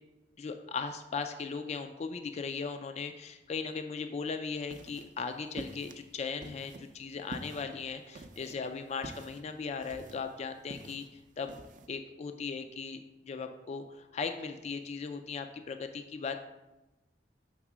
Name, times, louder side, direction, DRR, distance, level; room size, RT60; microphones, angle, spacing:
voice 1, 0.4-11.0 11.4-11.6 11.9-16.4, left 5 dB, 35° left, 7 dB, 0.3 m, -38 dB
sound 1, 4.5-11.9, right 2 dB, 45° right, 0.5 m, -49 dB
6.0 x 3.5 x 6.0 m, 1.0 s
head